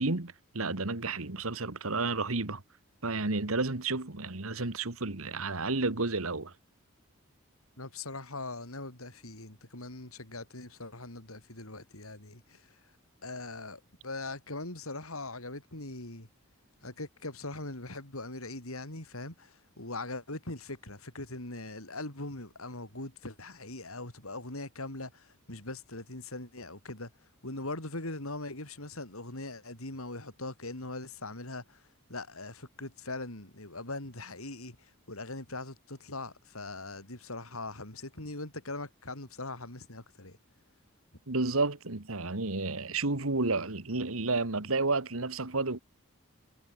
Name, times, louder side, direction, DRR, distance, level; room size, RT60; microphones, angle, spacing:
voice 1, 0.0-2.6 3.0-6.5 41.3-45.8, right 3 dB, 75° right, 1.9 m, -31 dB
voice 2, 7.8-12.8 13.2-16.3 16.8-27.1 27.4-31.8 32.1-40.4, left 2 dB, 80° left, 6.1 m, -41 dB
head